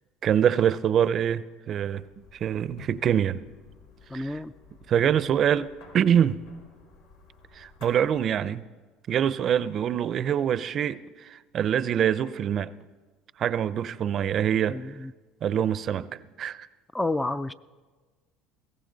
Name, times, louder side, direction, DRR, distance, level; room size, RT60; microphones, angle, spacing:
voice 1, 0.2-2.0 2.3-3.4 4.1-4.4 4.9-5.7 5.9-6.4 7.5-8.6 9.1-12.7 13.4-14.8 15.4-16.7, right 9 dB, 45° right, 16 dB, 0.5 m, -25 dB
sound 1, 1.9-8.4, left 3 dB, 85° left, 4.2 m, -52 dB
voice 2, 4.1-4.5 14.7-15.1 16.9-17.5, left 2 dB, 10° left, 13 dB, 0.4 m, -29 dB
21.0 x 17.0 x 4.0 m, 1.4 s
supercardioid pair, 105°, 0 cm